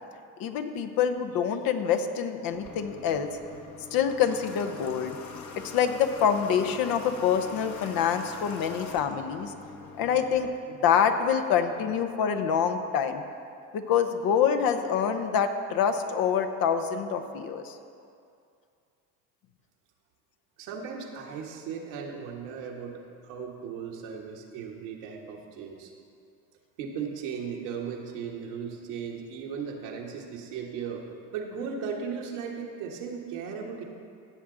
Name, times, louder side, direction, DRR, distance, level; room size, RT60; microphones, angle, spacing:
voice 1, 0.4-3.3 3.9-5.1 5.7-9.5 10.0-13.2 13.7-17.8, left 7 dB, 70° left, 7 dB, 0.9 m, -26 dB
Water / Water tap faucet, 2.5-10.5, left 4 dB, 50° left, 1.1 m, -44 dB
voice 2, 20.6-25.9 26.8-31.1 31.3-33.8, right 6 dB, 85° right, 0 dB, 1.4 m, -37 dB
16.0 x 7.5 x 3.8 m, 2.4 s
supercardioid pair, 70°, 37 cm